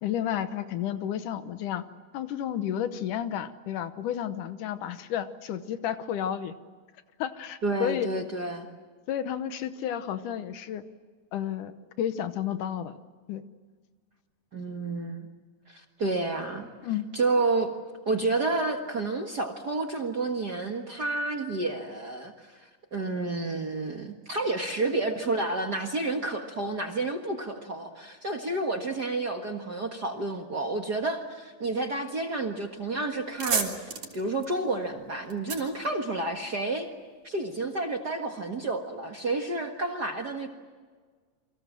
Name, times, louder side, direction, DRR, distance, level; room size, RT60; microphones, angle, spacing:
voice 1, 0.0-1.8 2.1-6.5 7.2-8.1 9.1-10.8 11.3-13.0 13.3-13.4 16.8-17.1, left 10 dB, 75° left, 11 dB, 2.5 m, -31 dB
voice 2, 7.6-8.7 14.5-15.3 15.7-16.7 17.1-17.7 18.1-33.7 34.1-36.9 37.2-40.5, right 2 dB, 40° right, 3 dB, 1.6 m, -30 dB
sound 1, 32.7-32.8 33.1-36.7, right 5 dB, 60° right, 4.9 m, -34 dB
29.0 x 24.5 x 7.6 m, 1.5 s
omnidirectional pair, 3.9 m